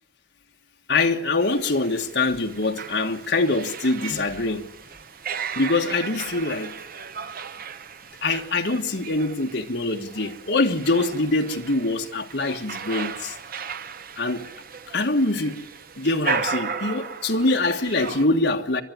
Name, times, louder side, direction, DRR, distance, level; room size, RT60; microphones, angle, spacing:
voice 1, 0.9-4.7 5.5-6.7 8.2-13.3 14.2-14.5 14.9-15.6 16.0-18.8, left 2 dB, 65° left, 1.6 m, -24 dB
sound 1, 1.4-18.2, right 5 dB, 50° right, 0.9 m, -35 dB
29.0 x 12.0 x 9.6 m
head